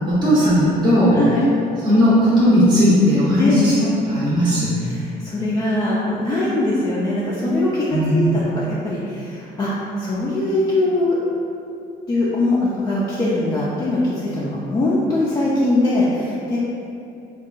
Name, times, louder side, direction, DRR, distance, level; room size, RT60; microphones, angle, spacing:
voice 1, 0.1-1.2 1.8-4.8 7.9-8.3, equal, 25° right, -11 dB, 0.6 m, -16 dB
voice 2, 1.1-1.5 3.4-3.6 4.8-9.7 10.0-11.2 12.1-16.6, left 2 dB, 25° left, -7 dB, 0.3 m, -21 dB
2.7 x 2.2 x 2.5 m, 2.6 s
cardioid pair, 110°, 17 cm